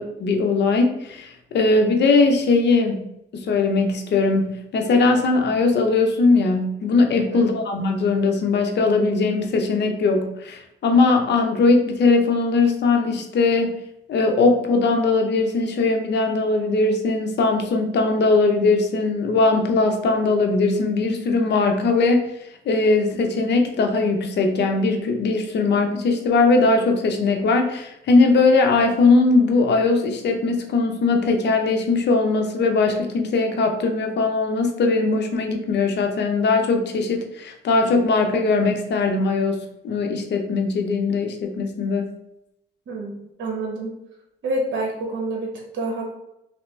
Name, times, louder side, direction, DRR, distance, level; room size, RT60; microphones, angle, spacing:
voice 1, 0.0-13.8 14.1-22.2 22.7-42.1, left 3 dB, 60° left, 4 dB, 0.7 m, -20 dB
voice 2, 42.9-43.9 44.4-46.1, right 2 dB, 70° right, -1 dB, 1.1 m, -28 dB
3.3 x 2.8 x 3.2 m, 0.81 s
cardioid pair, 90°, 20 cm